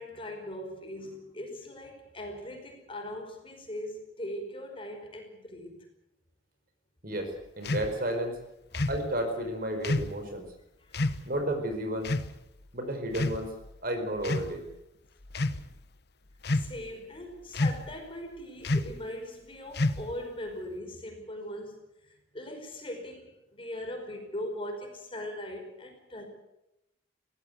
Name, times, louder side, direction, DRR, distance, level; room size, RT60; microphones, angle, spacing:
voice 1, 0.0-5.8 8.7-8.9 10.8-11.3 16.5-21.8 22.3-26.3, left 1 dB, 25° left, 4 dB, 5.0 m, -40 dB
voice 2, 7.0-8.4 8.9-10.5 11.3-12.1 12.7-13.5 13.8-14.6, right 1 dB, 50° right, 6 dB, 4.8 m, -32 dB
sound 1, 7.6-7.9 8.7-9.0 9.8-10.2 10.9-11.2 12.0-12.3 13.1-13.7 14.2-14.5 15.2-15.6 16.4-16.9 17.5-17.9 18.6-19.0 19.7-20.2, left 2 dB, 55° left, 1.1 m, -29 dB
23.5 x 17.5 x 8.2 m, 0.87 s
head